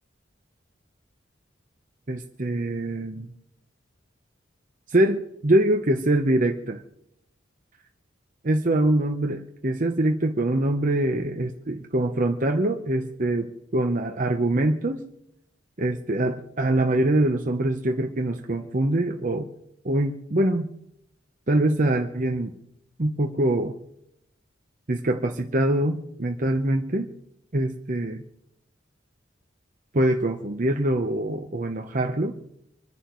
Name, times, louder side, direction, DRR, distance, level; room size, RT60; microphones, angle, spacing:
voice 1, 2.1-3.3 4.9-6.8 8.4-15.0 15.8-19.5 19.8-20.7 21.5-22.5 23.0-23.7 24.9-27.1 27.5-28.2 29.9-32.3, right 1 dB, 45° right, 4 dB, 0.9 m, -24 dB
27.0 x 11.0 x 3.1 m, 0.78 s
head